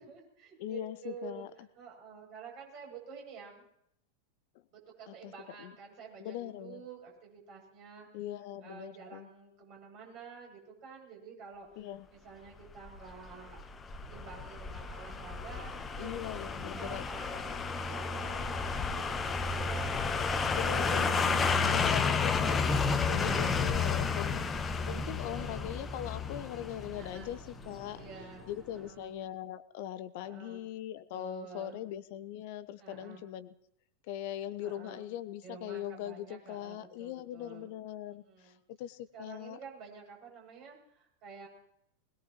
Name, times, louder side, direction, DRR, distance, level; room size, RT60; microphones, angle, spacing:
voice 1, 0.0-3.7 4.7-8.1 8.6-13.6 14.1-16.1 16.7-22.5 23.1-23.7 24.3-24.9 27.0-27.3 27.9-29.1 30.2-30.7 31.1-31.8 32.8-33.2 34.6-35.0 35.4-37.7 38.1-38.6 39.1-41.5, right 5 dB, 40° right, -1 dB, 7.9 m, -50 dB
voice 2, 0.6-1.5 5.1-5.3 5.6-5.7 6.2-6.8 8.1-9.3 11.8-12.1 16.0-17.0 20.5-28.0 28.5-33.5 34.1-39.6, left 12 dB, 50° left, 15 dB, 0.9 m, -41 dB
sound 1, 12.8-27.8 28.1-28.2, left 4 dB, 20° left, 1.2 m, -32 dB
sound 2, 17.6-28.9, equal, ahead, 4.0 m, -53 dB
21.5 x 20.5 x 3.1 m, 0.72 s
figure-of-eight pair, 90°, 0 cm